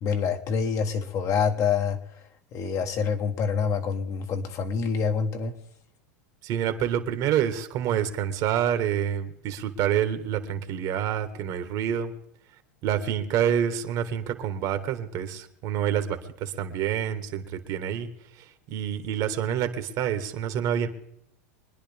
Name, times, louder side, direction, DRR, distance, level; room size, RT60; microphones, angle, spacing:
voice 1, 0.0-2.0 2.5-5.5, left 6 dB, 40° left, 6 dB, 1.3 m, -26 dB
voice 2, 6.4-12.1 12.8-18.1 18.4-20.9, right 9 dB, 50° right, 8 dB, 1.7 m, -27 dB
24.5 x 10.0 x 3.5 m, 0.73 s
hypercardioid pair, 115°, 8 cm